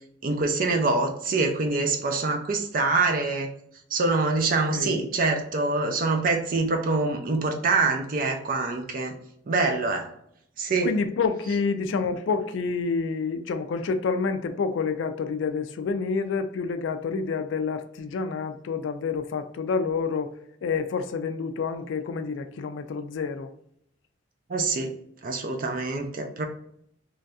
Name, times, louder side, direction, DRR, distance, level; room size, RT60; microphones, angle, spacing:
voice 1, 0.2-3.5 3.9-9.2 9.5-10.1 10.6-10.9 24.5-24.9 25.2-26.5, right 3 dB, 50° right, 0.4 m, -25 dB
voice 2, 10.8-20.3 20.6-23.5, left 5 dB, 75° left, 0.3 m, -28 dB
3.1 x 2.6 x 2.3 m
head